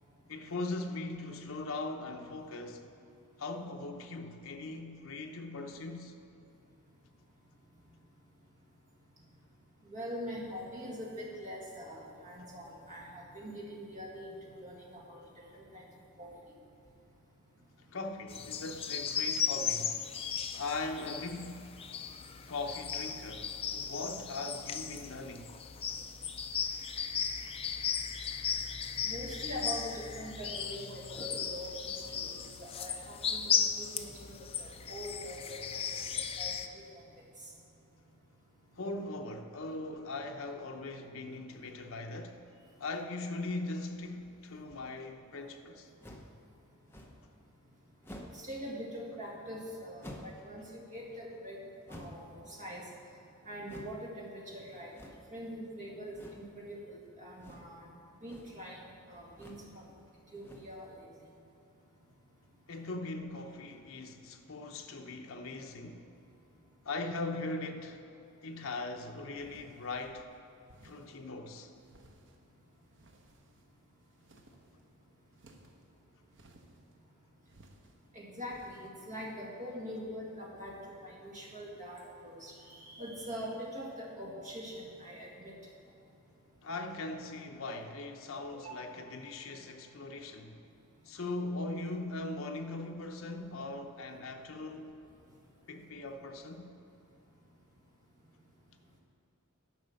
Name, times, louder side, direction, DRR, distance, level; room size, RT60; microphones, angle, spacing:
voice 1, 0.3-2.9 3.4-6.2 17.9-20.0 20.5-21.7 22.5-25.5 38.8-42.4 42.8-45.9 62.7-66.1 66.8-68.0 68.4-70.3 70.8-71.7 86.6-90.6 91.0-94.9 95.7-96.7, left 2 dB, 65° left, 0.8 m, -40 dB
voice 2, 9.9-15.2 15.5-15.9 16.2-16.3 29.0-36.0 36.4-36.8 48.3-51.6 51.9-52.8 53.5-54.9 55.3-57.9 58.2-59.9 60.3-61.0 78.1-85.5 88.5-88.8, equal, 35° right, 1.9 m, -43 dB
sound 1, 18.3-36.7, left 7 dB, 25° left, 0.4 m, -36 dB
sound 2, 46.0-46.4 46.9-47.3 48.0-48.5 50.0-50.4 51.9-52.3 53.6-54.0 54.9-55.4 56.1-56.5 57.4-57.8 58.1-58.6 59.3-59.7 60.4-60.8, equal, 10° left, 0.8 m, -49 dB
sound 3, 69.3-70.3 70.7-71.2 71.8-72.5 72.9-73.8 74.1-74.8 75.3-75.9 76.3-76.9 77.5-78.0 78.5-78.9, right 1 dB, 60° right, 0.9 m, -60 dB
10.5 x 5.6 x 6.5 m
head